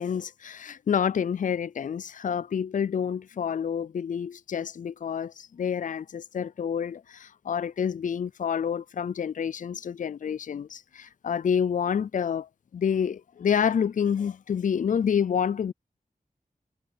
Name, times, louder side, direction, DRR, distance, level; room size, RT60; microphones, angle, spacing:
voice 1, 0.0-15.7, left 7 dB, 60° left, 0.4 m, -28 dB
wide cardioid pair, 85°, 15 cm